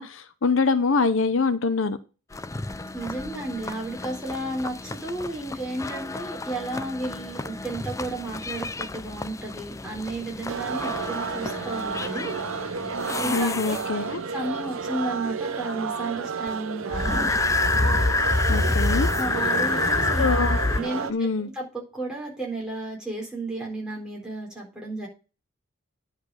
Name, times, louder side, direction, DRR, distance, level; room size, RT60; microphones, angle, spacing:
voice 1, 0.0-2.0 13.3-14.2 18.5-19.1 20.2-20.6 21.1-21.5, left 4 dB, 70° left, 11 dB, 0.7 m, -24 dB
sound 1, 2.3-14.2 16.9-20.8, left 2 dB, 15° left, 0.4 m, -28 dB
voice 2, 2.9-12.3 13.2-13.8 14.3-17.2 19.2-20.2 20.7-25.1, right 2 dB, 5° right, -4 dB, 4.0 m, -33 dB
sound 2, 10.5-21.1, right 5 dB, 75° right, 0.8 m, -32 dB
10.0 x 5.0 x 6.4 m, 0.33 s
head